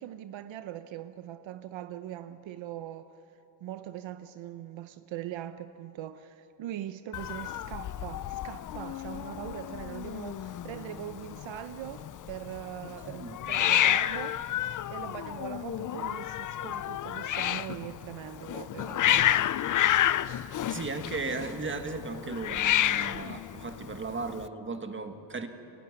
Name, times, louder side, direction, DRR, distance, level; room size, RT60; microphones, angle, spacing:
voice 1, 0.0-3.1 3.6-19.5, right 11 dB, 75° right, 0.8 m, -41 dB
Hiss, 7.1-24.5, left 12 dB, 45° left, 0.5 m, -30 dB
voice 2, 13.0-13.4 20.7-25.5, right 4 dB, 25° right, 1.7 m, -36 dB
29.5 x 12.5 x 9.8 m
cardioid pair, 120°, 46 cm